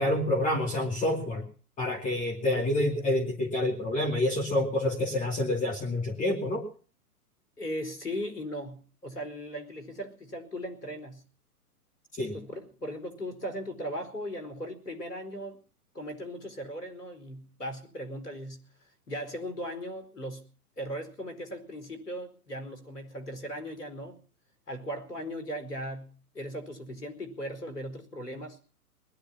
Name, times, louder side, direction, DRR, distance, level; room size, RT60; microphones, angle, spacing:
voice 1, 0.0-1.5 1.8-6.6 12.2-12.4, left 1 dB, 15° left, 1 dB, 2.5 m, -28 dB
voice 2, 7.6-11.2 12.3-15.6 15.9-18.6 19.1-20.5 20.8-24.2 24.7-28.6, equal, 85° left, 9 dB, 4.8 m, -38 dB
20.5 x 11.5 x 5.8 m, 0.40 s
figure-of-eight pair, 115°, 46 cm